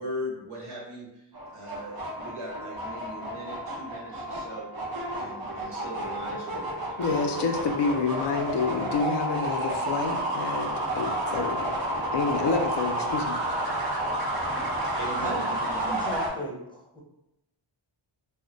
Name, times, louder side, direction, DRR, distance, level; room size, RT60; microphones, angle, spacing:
voice 1, 0.0-4.7 5.1-7.5 14.9-16.1, equal, 80° right, -5 dB, 1.0 m, -39 dB
sound 1, 1.3-16.3, right 1 dB, 50° right, 0.8 m, -31 dB
voice 2, 7.0-11.7 12.1-13.4, left 4 dB, 60° left, 4 dB, 0.5 m, -28 dB
voice 3, 15.0-15.5 15.8-17.0, equal, 10° left, -3 dB, 0.7 m, -35 dB
2.1 x 2.1 x 3.8 m, 0.87 s
wide cardioid pair, 70°, 49 cm